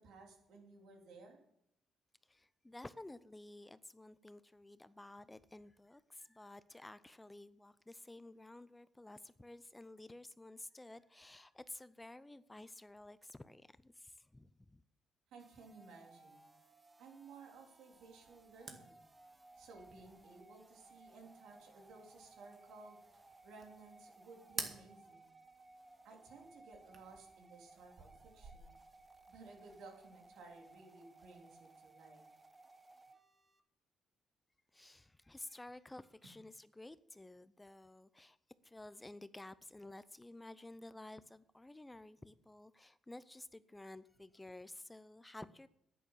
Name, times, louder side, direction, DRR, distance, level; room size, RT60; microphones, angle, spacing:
voice 1, 0.0-1.4 15.3-16.5 17.0-19.0 19.5-23.1 23.4-25.3 26.0-28.8 29.3-32.2, right 4 dB, 80° right, 3.3 m, -57 dB
voice 2, 2.3-14.8 34.7-38.4 38.6-45.7, left 2 dB, 15° left, 0.6 m, -53 dB
sound 1, 15.4-33.6, right 2 dB, 20° right, 1.2 m, -62 dB
sound 2, 17.9-30.8, right 5 dB, 50° right, 2.0 m, -54 dB
10.5 x 9.3 x 7.3 m
cardioid pair, 90°, 0 cm